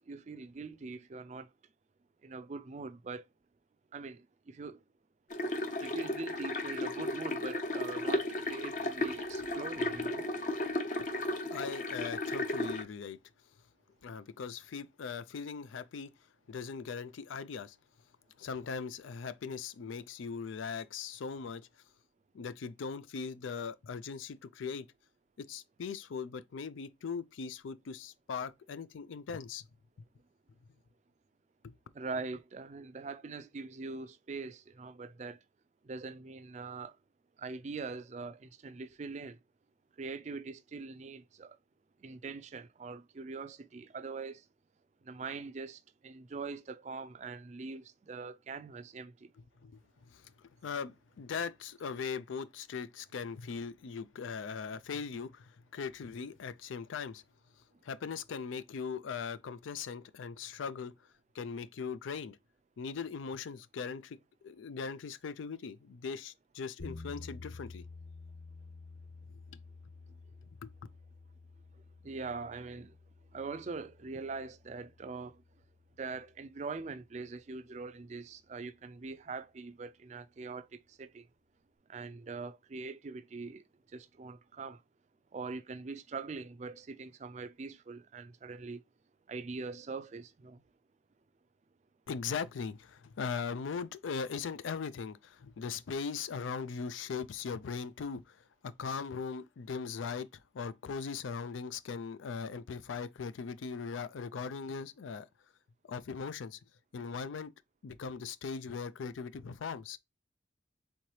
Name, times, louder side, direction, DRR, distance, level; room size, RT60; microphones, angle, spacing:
voice 1, 0.0-1.5 2.2-3.3 3.9-4.8 5.8-10.2 31.9-35.4 35.8-37.0 37.4-39.4 40.0-41.6 42.0-44.4 45.0-49.3 72.0-72.9 73.3-75.4 76.0-81.3 81.9-83.6 83.9-84.8 85.3-88.8 89.3-90.6, right 4 dB, 35° right, 0.4 m, -43 dB
sound 1, 5.3-12.8, left 1 dB, 40° left, 0.6 m, -34 dB
voice 2, 11.5-13.2 14.0-16.1 16.5-17.8 18.4-21.7 22.3-24.9 25.4-29.7 31.6-31.7 49.6-49.8 50.1-57.2 57.8-60.9 61.3-62.4 62.8-64.2 64.4-67.8 69.5-69.6 70.6-70.7 92.1-105.3 105.9-106.6 106.9-107.5 107.8-110.0, left 5 dB, 85° left, 0.4 m, -40 dB
sound 2, 66.8-76.8, left 3 dB, 65° left, 2.4 m, -51 dB
4.3 x 3.8 x 3.1 m
head